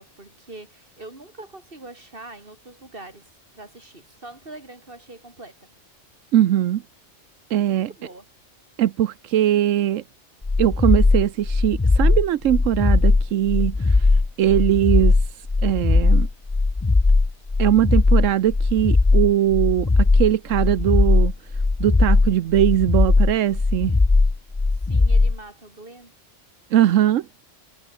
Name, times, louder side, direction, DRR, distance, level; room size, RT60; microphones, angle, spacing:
voice 1, 0.0-5.7 7.7-8.3 24.8-26.1, right 2 dB, 45° right, 4.2 m, -43 dB
voice 2, 6.3-6.8 7.5-7.9 8.8-10.0 10.6-15.2 15.6-16.3 17.6-21.3 21.8-23.9 26.7-27.3, right 12 dB, 85° right, 1.1 m, -20 dB
sound 1, 10.4-25.4, left 3 dB, 25° left, 0.3 m, -18 dB
omnidirectional pair, 1.3 m